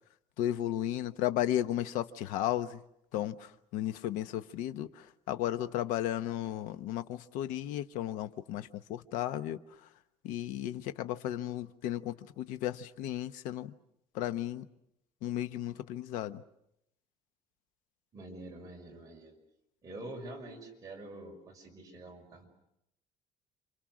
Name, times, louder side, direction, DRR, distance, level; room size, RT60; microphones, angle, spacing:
voice 1, 0.4-2.8 3.1-9.9 10.2-13.7 14.1-14.7 15.2-16.4, left 12 dB, 90° left, 11 dB, 1.1 m, -34 dB
voice 2, 18.1-19.3 19.8-22.5, right 2 dB, 25° right, 0 dB, 5.8 m, -46 dB
28.5 x 27.0 x 6.3 m, 0.80 s
cardioid pair, 155°, 13 cm